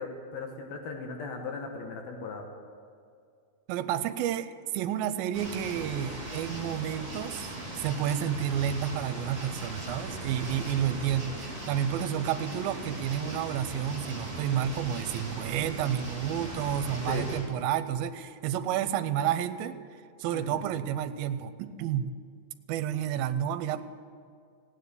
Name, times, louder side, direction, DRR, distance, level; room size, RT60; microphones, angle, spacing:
voice 1, 0.0-2.5 17.1-17.2 20.3-20.7, left 4 dB, 75° left, 3 dB, 3.0 m, -38 dB
voice 2, 3.7-19.8 20.2-22.1 22.7-23.8, right 10 dB, 80° right, 11 dB, 2.4 m, -30 dB
sound 1, 5.3-17.4, right 1 dB, 20° right, 4.0 m, -39 dB
16.0 x 9.7 x 8.3 m, 2.2 s
omnidirectional pair, 4.4 m